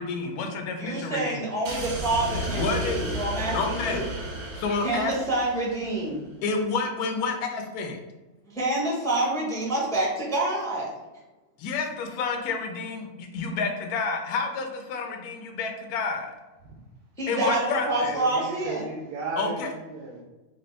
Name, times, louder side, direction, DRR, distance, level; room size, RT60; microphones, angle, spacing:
voice 1, 0.0-1.4 2.5-3.0 3.5-4.1 4.5-5.1 6.4-8.0 11.6-16.3 17.3-18.2 19.4-19.7, left 4 dB, 70° left, 4 dB, 1.1 m, -29 dB
voice 2, 0.8-4.0 4.8-6.2 8.5-10.9 17.2-18.9, right 2 dB, 5° left, -4 dB, 0.5 m, -27 dB
sound 1, 1.6-6.0, right 1 dB, 60° right, 0.8 m, -33 dB
voice 3, 18.1-20.2, right 3 dB, 80° right, -3 dB, 1.2 m, -35 dB
4.2 x 2.6 x 3.1 m, 1.1 s
omnidirectional pair, 1.8 m